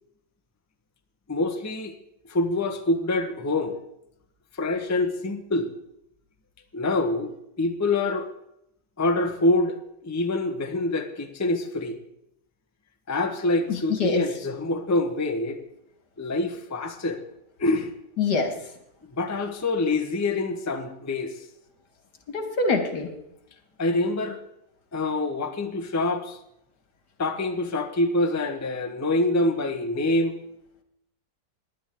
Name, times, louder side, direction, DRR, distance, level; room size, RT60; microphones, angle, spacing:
voice 1, 1.3-1.9 2.3-3.8 4.6-5.7 6.7-7.3 7.6-8.3 9.0-9.8 10.0-12.0 13.1-15.6 16.2-17.2 17.6-17.9 19.1-21.3 23.8-24.4 24.9-26.4 27.2-30.4, left 2 dB, 15° left, 6 dB, 0.7 m, -25 dB
voice 2, 13.7-14.2 18.2-18.5 22.3-23.1, left 4 dB, 80° left, 6 dB, 2.3 m, -24 dB
19.0 x 10.5 x 3.7 m, 0.80 s
omnidirectional pair, 1.8 m